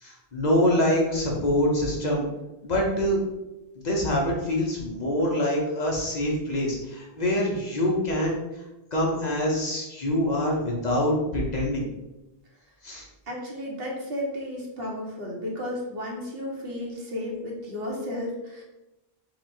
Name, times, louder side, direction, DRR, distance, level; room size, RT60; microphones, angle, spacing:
voice 1, 0.0-2.2 2.6-3.2 3.8-8.4 8.9-11.8 12.8-13.0, left 1 dB, 45° left, -2 dB, 0.8 m, -25 dB
voice 2, 13.3-18.6, left 1 dB, 70° right, -2 dB, 1.2 m, -33 dB
3.9 x 2.3 x 4.2 m, 0.98 s
omnidirectional pair, 1.0 m